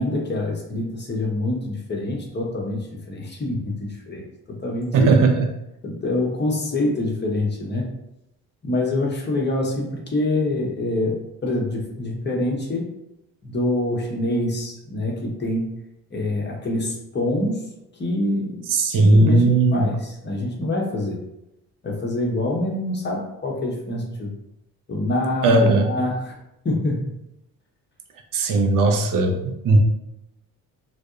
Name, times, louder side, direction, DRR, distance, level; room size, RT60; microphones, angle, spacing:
voice 1, 0.0-4.2 4.5-5.1 5.8-7.9 8.6-12.9 13.4-15.8 16.1-17.7 18.0-21.2 21.8-24.3 24.9-26.3 26.6-27.1, left 1 dB, 20° left, -1 dB, 0.7 m, -25 dB
voice 2, 4.9-5.4 18.7-19.9 25.4-25.9 28.3-29.8, right 2 dB, 45° right, 4 dB, 0.5 m, -17 dB
2.6 x 2.0 x 2.4 m, 0.84 s
hypercardioid pair, 50°, 48 cm